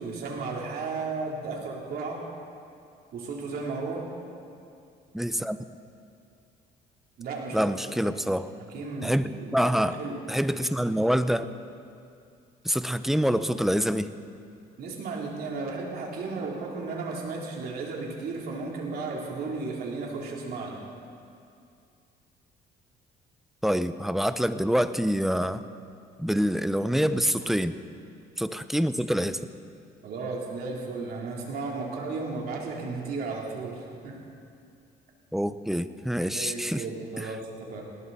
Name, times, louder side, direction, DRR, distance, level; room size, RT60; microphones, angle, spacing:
voice 1, 0.0-2.2 3.1-4.1 7.2-7.6 7.8-8.1 8.7-10.2 14.8-20.8 30.0-34.2 36.3-37.8, right 3 dB, 65° right, -1 dB, 3.3 m, -34 dB
voice 2, 5.1-5.6 7.5-8.5 9.0-10.0 10.3-11.5 12.6-14.1 23.6-25.6 26.2-27.7 28.4-29.4 35.3-36.8 37.2-37.3, equal, ahead, 12 dB, 0.6 m, -26 dB
19.5 x 18.0 x 4.1 m, 2.5 s
cardioid pair, 110°, 17 cm